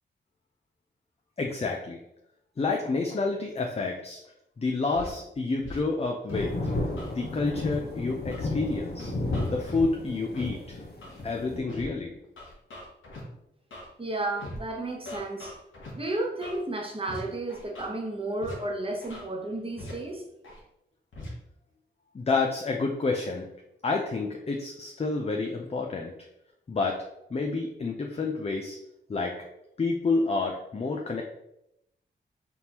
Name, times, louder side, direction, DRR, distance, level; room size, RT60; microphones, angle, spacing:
voice 1, 1.4-2.0 2.6-4.2 4.6-6.5 7.1-9.1 9.5-10.8 11.2-12.1 22.1-23.5 23.8-26.1 26.7-27.0 27.3-28.8 29.1-29.3 29.8-31.2, left 3 dB, 30° left, 1 dB, 0.5 m, -29 dB
Scratching (performance technique), 4.9-5.1 5.6-5.8 6.3-7.1 7.6-7.7 8.3-8.4 9.0-9.8 10.3-10.5 11.0-11.2 11.7-11.8 12.4-13.2 13.7-13.9 14.4-14.6 15.1-15.9 16.4-16.6 17.1-17.2 17.5-17.9 18.4-18.5 19.0-19.2 19.8-19.9 20.4-20.6 21.1-21.3, left 1 dB, 90° left, 1.2 m, -40 dB
sound 1, 6.3-11.6, left 2 dB, 55° left, 0.9 m, -33 dB
voice 2, 14.0-15.5 16.0-20.2, right 2 dB, 30° right, 1 dB, 0.9 m, -32 dB
4.2 x 3.6 x 2.9 m, 0.83 s
cardioid pair, 65°, 20 cm